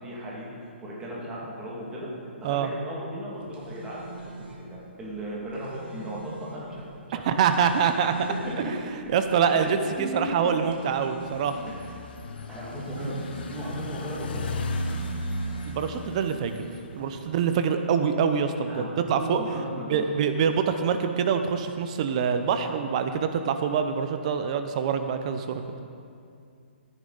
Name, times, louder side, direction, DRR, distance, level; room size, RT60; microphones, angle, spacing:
voice 1, 0.0-0.5 0.8-2.1 2.4-6.9 7.1-7.2 8.3-8.4 8.6-8.7 9.4-9.7 10.0-10.3 11.8-11.9 12.5-14.5 18.6-20.0, right 1 dB, 10° right, -5 dB, 1.9 m, -36 dB
sound 1, 3.3-16.3, right 3 dB, 55° right, 2.1 m, -43 dB
voice 2, 7.2-8.1 8.6-8.8 9.1-11.6 15.7-16.6 17.0-19.4 19.9-25.6, right 7 dB, 35° right, 8 dB, 0.6 m, -25 dB
sound 2, 11.2-17.4, left 1 dB, 50° left, 0.9 m, -35 dB
14.0 x 10.0 x 3.9 m, 2.4 s
hypercardioid pair, 165°, 7 cm